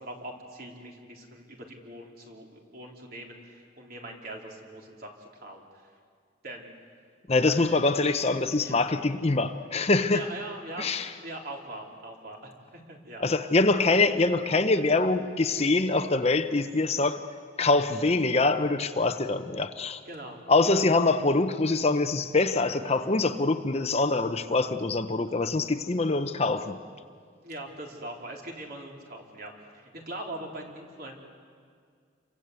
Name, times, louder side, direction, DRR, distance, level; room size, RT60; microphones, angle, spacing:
voice 1, 0.0-5.9 6.4-6.7 8.6-8.7 10.1-13.2 20.1-20.4 27.4-31.1, right 1 dB, 50° right, 0 dB, 4.0 m, -42 dB
voice 2, 7.3-10.2 10.8-11.1 13.2-17.2 17.6-20.0 20.5-26.8, left 3 dB, 35° left, 8 dB, 0.9 m, -24 dB
29.0 x 24.5 x 8.3 m, 2.1 s
head